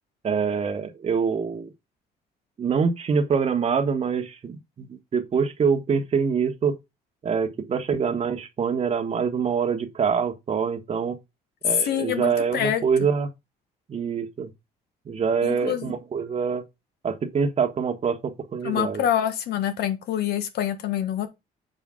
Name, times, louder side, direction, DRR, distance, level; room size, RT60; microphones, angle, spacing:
voice 1, 0.2-1.7 2.6-6.8 7.2-11.2 11.6-13.3 13.9-14.5 15.1-16.6 17.0-19.0, right 6 dB, 35° right, 1.3 m, -25 dB
voice 2, 11.6-12.8 15.4-15.9 18.6-21.3, left 10 dB, 70° left, 1.4 m, -26 dB
7.6 x 4.9 x 3.7 m
cardioid pair, 110°, 17 cm